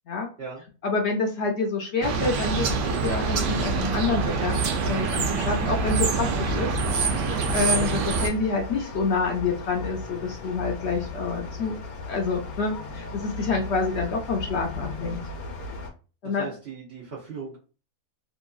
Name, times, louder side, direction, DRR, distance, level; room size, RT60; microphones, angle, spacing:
voice 1, 0.8-6.8 7.3-11.8 12.1-15.2 16.2-16.5, left 4 dB, 60° left, 1 dB, 0.7 m, -27 dB
sound 1, 2.0-8.3, right 4 dB, 80° right, 1.1 m, -25 dB
sound 2, 7.1-15.9, left 3 dB, 90° left, 1.2 m, -36 dB
voice 2, 16.2-17.6, right 5 dB, 55° right, -5 dB, 0.9 m, -38 dB
2.8 x 2.6 x 2.3 m, 0.35 s
omnidirectional pair, 1.5 m